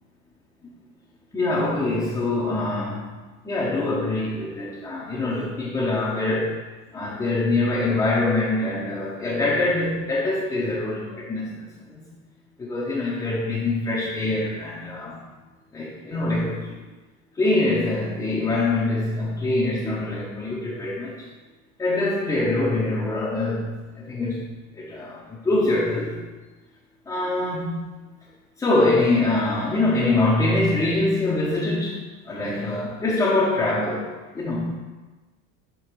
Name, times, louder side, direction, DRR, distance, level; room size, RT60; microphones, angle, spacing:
voice 1, 1.3-3.2 3.4-6.6 6.9-12.0 12.6-15.2 15.7-16.8 17.3-21.3 21.8-24.4 24.7-26.2 27.1-27.8 28.6-34.8, left 2 dB, 10° left, -5 dB, 0.5 m, -24 dB
6.6 x 4.0 x 4.4 m, 1.3 s
supercardioid pair, 155°, 41 cm